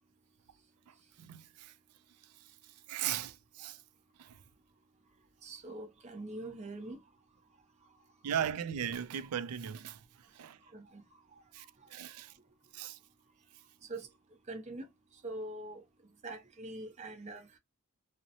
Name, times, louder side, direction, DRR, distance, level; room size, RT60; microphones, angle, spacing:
voice 1, 0.9-1.7 2.9-3.8 4.2-4.4 8.2-10.0 10.3-10.6 11.5-12.3 12.7-13.0, right 9 dB, 85° right, 0.4 m, -38 dB
voice 2, 5.4-7.0 10.7-11.0 13.9-14.1 14.5-14.8 15.2-15.8 16.2-17.5, right 2 dB, 30° right, 0.6 m, -43 dB
2.8 x 2.0 x 2.5 m
head